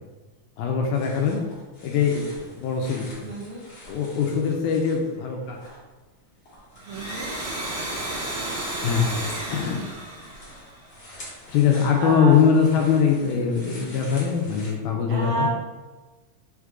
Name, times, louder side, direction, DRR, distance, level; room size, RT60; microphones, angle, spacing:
voice 1, 0.6-1.4 1.8-2.3 2.6-3.3 3.9-5.6 8.8-9.2 9.5-9.8 11.5-15.5, left 6 dB, 80° left, 1 dB, 1.9 m, -22 dB
sound 1, 0.9-5.8 6.1-14.7, left 1 dB, 65° left, 1.1 m, -46 dB
voice 2, 3.2-3.6 6.9-7.3 12.0-12.4 15.1-15.5, right 3 dB, 80° right, -2 dB, 1.8 m, -29 dB
Domestic sounds home sounds, 6.7-11.2, right 1 dB, 55° right, 1.3 m, -32 dB
4.6 x 4.3 x 2.4 m, 1.2 s
omnidirectional pair, 3.7 m